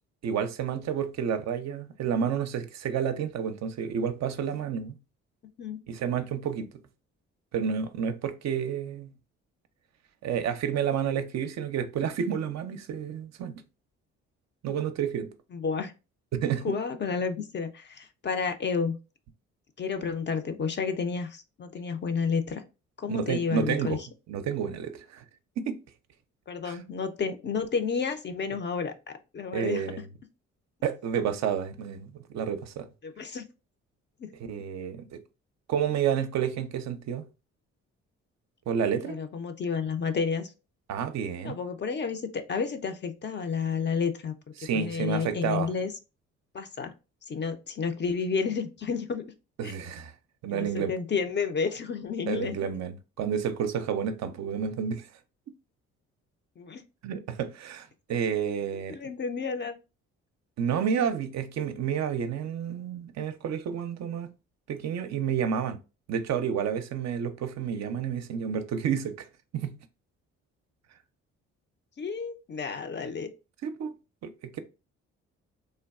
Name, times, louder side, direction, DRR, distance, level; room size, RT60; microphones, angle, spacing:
voice 1, 0.2-4.9 5.9-6.7 7.5-9.1 10.2-13.6 14.6-15.3 16.3-16.8 23.1-24.0 24.3-25.2 25.6-25.8 26.7-26.8 29.5-30.0 30.8-32.9 34.5-35.2 35.7-37.2 38.7-39.2 40.9-41.6 44.6-45.7 49.6-50.1 50.4-50.9 52.3-55.1 57.0-59.0 60.6-64.3 64.7-65.8 66.1-69.3 69.5-69.8 73.6-73.9 74.2-74.6, right 8 dB, 55° right, 0.5 m, -30 dB
voice 2, 15.5-15.9 16.6-19.0 19.8-22.6 23.0-24.0 26.5-29.8 33.0-33.4 34.2-34.3 39.0-40.5 41.4-44.3 44.7-45.9 46.5-46.9 47.3-49.2 49.6-49.7 50.5-52.5 56.6-56.8 58.9-59.7 72.0-73.3, left 5 dB, 35° left, 0.5 m, -31 dB
3.3 x 2.2 x 2.3 m
supercardioid pair, 55°, 32 cm